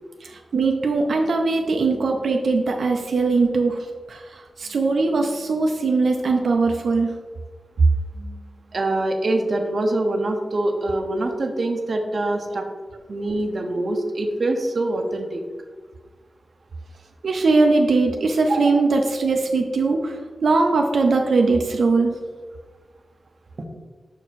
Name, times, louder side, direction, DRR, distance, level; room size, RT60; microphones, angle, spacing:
voice 1, 0.2-3.8 4.1-7.1 17.2-22.1, right 3 dB, 80° right, 2 dB, 0.5 m, -20 dB
voice 2, 8.7-12.7 13.1-15.4 18.4-18.8 23.6-23.7, right 2 dB, 45° right, 4 dB, 0.7 m, -24 dB
6.1 x 4.6 x 4.1 m, 1.4 s
wide cardioid pair, 160°, 0 cm